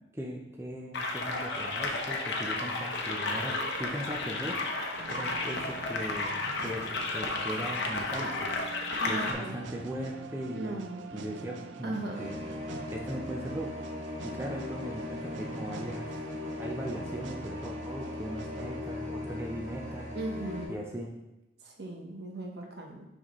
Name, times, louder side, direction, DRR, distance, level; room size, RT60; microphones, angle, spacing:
voice 1, 0.1-4.6 5.1-6.4 6.6-8.5 9.1-10.8 11.1-12.4 12.9-13.7 14.2-16.1 16.6-20.1 20.7-21.1, equal, 15° right, -1 dB, 0.5 m, -38 dB
sound 1, 0.9-9.3, left 2 dB, 70° left, 0.8 m, -33 dB
sound 2, 4.9-20.1, right 4 dB, 90° right, 0.4 m, -46 dB
voice 2, 9.0-9.6 10.5-11.1 11.8-12.2 20.1-20.8 21.6-23.1, right 1 dB, 60° right, 1 dB, 0.9 m, -37 dB
sound 3, 12.1-20.6, left 2 dB, 40° right, 2.0 m, -39 dB
6.2 x 5.0 x 3.1 m, 0.94 s
head